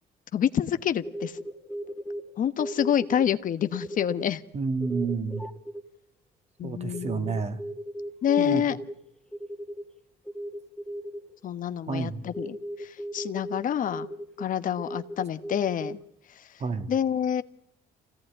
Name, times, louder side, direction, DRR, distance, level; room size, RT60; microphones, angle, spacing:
voice 1, 0.3-1.4 2.4-4.4 6.6-7.4 8.2-8.8 11.4-14.1 14.4-16.0 16.9-17.4, left 9 dB, 50° left, 12 dB, 1.2 m, -27 dB
sound 1, 0.8-2.3 2.6-3.2 3.6-4.2 4.8-5.8 6.9-8.9 9.3-9.8 10.3-11.3 12.3-13.6 13.9-14.4 14.8-15.9, equal, 5° left, 2.1 m, -36 dB
voice 2, 4.5-5.4 6.6-7.6 8.4-8.6 11.9-12.2 16.6-16.9, right 4 dB, 40° right, 9 dB, 2.1 m, -29 dB
26.5 x 17.5 x 10.0 m, 0.72 s
cardioid pair, 110°, 17 cm